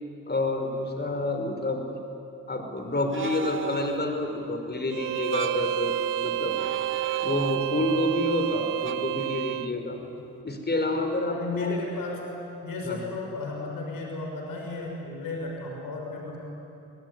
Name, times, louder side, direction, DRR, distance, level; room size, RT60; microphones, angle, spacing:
voice 1, 0.3-1.8 2.5-5.9 6.2-6.5 6.9-10.0 10.4-11.8 12.8-13.0, left 2 dB, 30° left, 4 dB, 4.8 m, -28 dB
sound 1, 3.1-4.2 5.2-5.7 6.5-7.9 8.8-9.0, right 6 dB, 35° right, 1.3 m, -36 dB
Bowed string instrument, 4.9-9.7, right 15 dB, 65° right, 0.6 m, -29 dB
voice 2, 11.2-12.1 12.6-16.4, left 3 dB, 70° left, 0 dB, 6.3 m, -34 dB
27.0 x 21.0 x 9.9 m, 2.9 s
hypercardioid pair, 45°, 36 cm